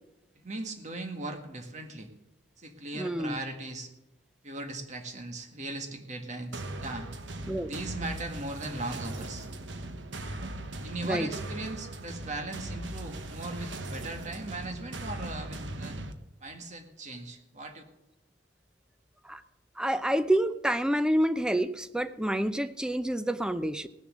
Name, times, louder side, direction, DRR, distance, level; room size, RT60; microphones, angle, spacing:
voice 1, 0.4-2.1 2.6-3.9 4.4-7.1 7.6-9.5 10.8-16.0 16.4-17.8, right 2 dB, 40° right, 5 dB, 1.7 m, -38 dB
voice 2, 2.9-3.4 7.5-7.7 11.0-11.3 19.2-19.4 19.8-23.9, right 1 dB, 5° right, 12 dB, 0.5 m, -28 dB
sound 1, 6.5-16.1, right 2 dB, 80° right, 1.1 m, -39 dB
18.5 x 7.0 x 6.3 m, 0.93 s
head